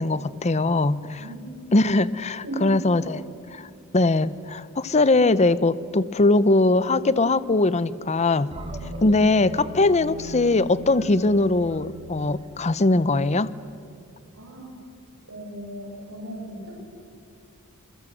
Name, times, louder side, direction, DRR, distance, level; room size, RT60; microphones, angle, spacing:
voice 1, 0.0-1.3 1.7-3.2 3.5-3.7 3.9-8.5 9.0-13.5, left 2 dB, 30° left, 17 dB, 0.7 m, -21 dB
voice 2, 1.2-1.7 2.4-2.7 14.3-14.7 15.3-16.7, right 1 dB, 75° right, -4 dB, 5.6 m, -37 dB
sound 1, 8.5-13.2, left 1 dB, 25° right, 2.9 m, -38 dB
27.5 x 22.0 x 7.9 m, 2.4 s
head